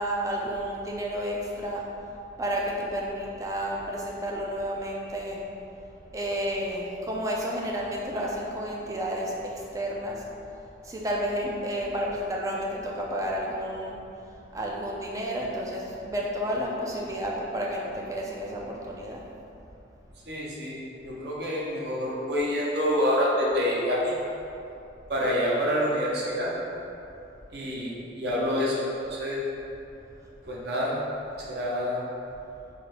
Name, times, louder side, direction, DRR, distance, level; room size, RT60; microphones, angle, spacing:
voice 1, 0.0-1.9 2.4-5.5 6.1-10.2 10.8-19.2 30.2-30.3, equal, 20° right, -2 dB, 0.3 m, -31 dB
voice 2, 20.3-24.2 25.1-26.5 27.5-29.4 30.5-31.0 31.5-32.0, equal, 60° right, -5 dB, 0.7 m, -27 dB
3.8 x 2.6 x 3.2 m, 2.7 s
head